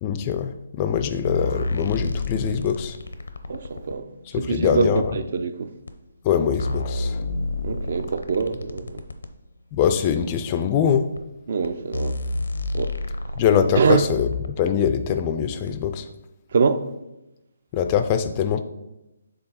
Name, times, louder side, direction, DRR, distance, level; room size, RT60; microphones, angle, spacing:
voice 1, 0.0-3.0 4.3-5.0 6.2-7.2 9.7-11.1 13.4-14.3 14.6-16.1 17.7-18.6, left 8 dB, 25° left, 0.3 m, -23 dB
sound 1, 1.3-4.0 5.0-5.1 5.9-6.0 6.3-9.3 10.2-10.3 11.2-11.3 11.6-11.7 11.9-14.7 15.7-15.8, left 2 dB, 90° left, 0.6 m, -30 dB
voice 2, 3.5-4.1 4.3-5.7 7.6-9.0 11.5-12.2 12.7-12.9 13.7-14.0 16.5-16.8, right 5 dB, 50° right, 0.5 m, -23 dB
6.7 x 3.9 x 4.3 m
hypercardioid pair, 165°, 0 cm